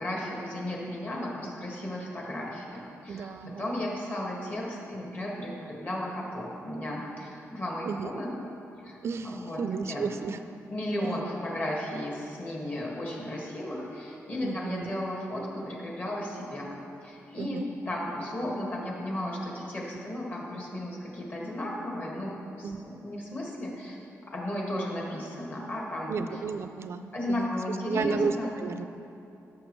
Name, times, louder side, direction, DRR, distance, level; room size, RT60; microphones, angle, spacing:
voice 1, 0.0-8.3 8.8-9.0 9.2-10.1 10.7-24.0 24.3-26.4 27.1-28.6, left 1 dB, 35° left, -3 dB, 1.7 m, -34 dB
voice 2, 3.1-3.7 7.8-8.1 9.0-10.4 11.0-11.1 14.4-14.9 17.4-17.7 22.6-22.8 26.1-28.9, right 5 dB, 55° right, 10 dB, 0.4 m, -33 dB
15.0 x 6.5 x 3.1 m, 2.8 s
wide cardioid pair, 160°, 5 cm